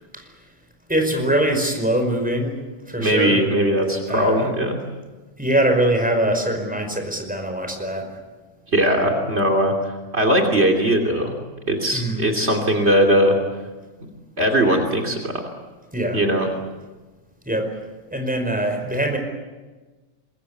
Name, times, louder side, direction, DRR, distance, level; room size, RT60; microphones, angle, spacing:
voice 1, 0.9-2.6 2.9-3.4 4.1-4.5 5.4-8.2 11.9-12.2 15.9-16.2 17.4-17.7 18.1-19.2, right 1 dB, 5° right, 4 dB, 5.0 m, -22 dB
voice 2, 3.0-4.8 8.7-11.4 11.7-13.4 14.4-15.3 16.1-16.5, equal, 55° right, 5 dB, 3.2 m, -19 dB
26.0 x 22.0 x 8.4 m, 1.2 s
omnidirectional pair, 1.4 m